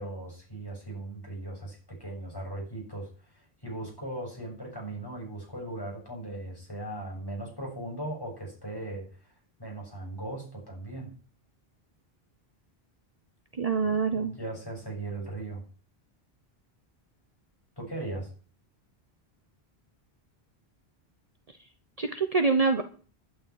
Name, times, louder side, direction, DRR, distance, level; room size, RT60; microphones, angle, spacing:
voice 1, 0.0-3.1 3.3-9.3 9.6-11.1 13.8-15.6 17.8-18.3, right 2 dB, 20° left, -1 dB, 7.0 m, -38 dB
voice 2, 13.6-14.3 21.5-21.6 22.0-22.8, right 4 dB, 40° right, 8 dB, 1.0 m, -25 dB
11.5 x 7.2 x 9.1 m, 0.40 s
omnidirectional pair, 1.1 m